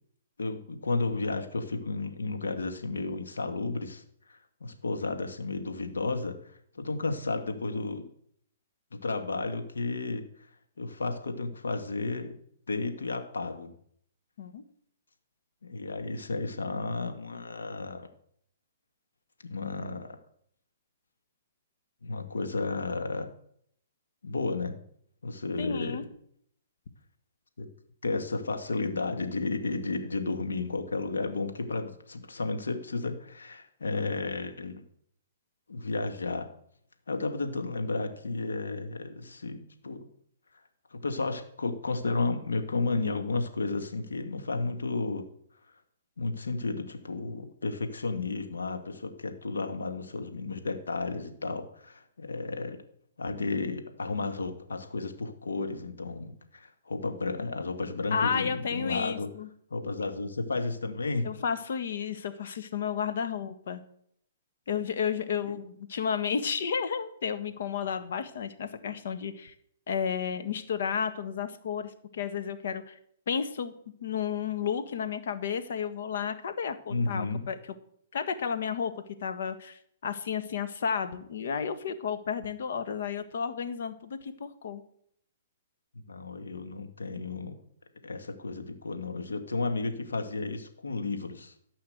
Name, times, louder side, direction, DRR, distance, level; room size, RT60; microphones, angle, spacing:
voice 1, 0.4-4.0 4.3-8.1 8.9-10.2 10.8-12.3 12.7-13.7 15.6-18.1 19.4-20.2 22.0-23.3 24.2-24.7 25.2-26.1 27.6-27.7 28.0-34.8 35.7-36.5 37.1-40.0 40.9-45.3 46.2-52.8 53.2-59.3 59.7-61.3 76.9-77.4 86.1-87.5 88.0-91.5, left 3 dB, 85° left, 6 dB, 2.0 m, -32 dB
voice 2, 25.6-26.0 58.1-59.5 61.2-63.8 64.7-69.5 69.9-73.0 73.3-73.7 74.0-77.6 78.1-78.9 79.2-84.8, left 7 dB, 65° left, 10 dB, 1.5 m, -32 dB
14.0 x 5.7 x 8.0 m, 0.68 s
hypercardioid pair, 130°, 0 cm